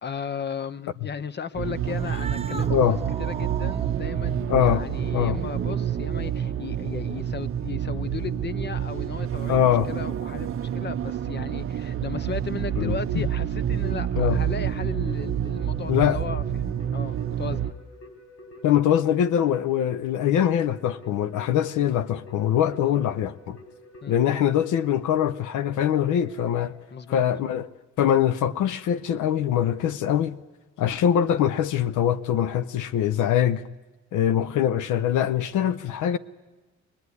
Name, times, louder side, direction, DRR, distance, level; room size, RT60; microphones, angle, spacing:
voice 1, 0.0-17.8 22.8-23.0 24.0-24.2 26.9-27.2, left 6 dB, 35° left, 0.9 m, -36 dB
sound 1, 1.5-17.7, right 9 dB, 45° right, 0.7 m, -28 dB
Cat, 1.8-7.4, right 4 dB, 20° right, 1.2 m, -41 dB
voice 2, 4.5-4.8 5.1-5.4 9.5-9.9 12.8-13.2 14.2-14.4 15.9-16.2 18.6-23.6 24.1-26.7 27.1-30.4 30.8-33.6 34.1-36.2, left 10 dB, 80° left, 0.7 m, -23 dB
Keyboard (musical), 15.1-27.5, left 1 dB, 55° left, 5.4 m, -48 dB
22.5 x 20.5 x 9.7 m
cardioid pair, 90°, 30 cm